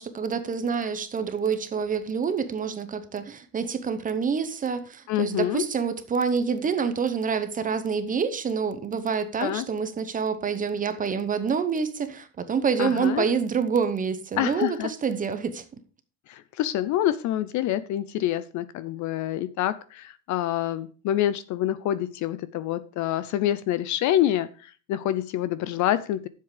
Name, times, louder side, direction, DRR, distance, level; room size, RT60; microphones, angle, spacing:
voice 1, 0.0-15.6, right 6 dB, 20° right, 0.8 m, -27 dB
voice 2, 5.1-5.6 9.4-9.6 12.8-13.3 14.4-14.9 16.3-26.3, left 12 dB, 45° left, 0.5 m, -27 dB
10.5 x 7.6 x 4.9 m
cardioid pair, 170°, 42 cm